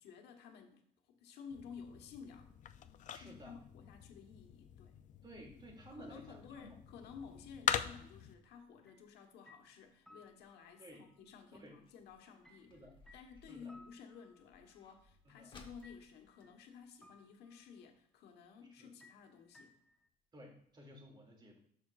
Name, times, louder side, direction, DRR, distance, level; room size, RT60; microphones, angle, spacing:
voice 1, 0.0-2.5 3.1-5.0 5.9-12.7 13.1-19.7, left 6 dB, 80° left, 4 dB, 1.3 m, -54 dB
sound 1, 1.5-8.3, left 9 dB, 50° left, 0.5 m, -43 dB
voice 2, 3.1-3.5 5.2-6.7 10.8-11.0 11.6-11.8 12.7-12.9 13.5-13.7 15.2-15.5 18.8-18.9 20.3-21.6, right 1 dB, 25° right, 0 dB, 2.6 m, -54 dB
sound 2, 8.6-17.6 18.0-18.1 18.3-18.7 19.2-19.3 19.8-19.9 20.2-20.3 20.7-20.8, left 2 dB, 30° left, 1.4 m, -64 dB
sound 3, 8.9-9.1 9.5-10.8 12.4-14.8 15.8-16.6 17.0-17.8 19.0-20.1, left 2 dB, 5° left, 1.0 m, -63 dB
12.5 x 5.8 x 2.4 m, 0.67 s
cardioid pair, 110°, 17 cm